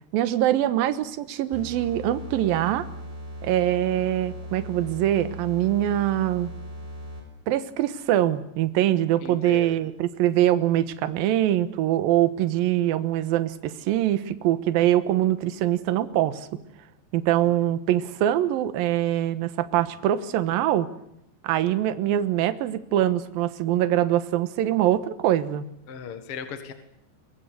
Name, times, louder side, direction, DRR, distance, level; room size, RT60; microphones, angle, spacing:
voice 1, 0.1-2.9 3.4-6.5 7.5-16.5 17.1-20.9 21.4-25.6, right 12 dB, 70° right, 11 dB, 2.6 m, -23 dB
sound 1, 1.5-7.4, equal, 15° right, 6.5 m, -38 dB
voice 2, 9.2-9.8 17.4-17.7 25.9-26.7, left 6 dB, 50° left, 7 dB, 1.7 m, -38 dB
22.5 x 22.0 x 8.2 m, 0.80 s
omnidirectional pair, 5.0 m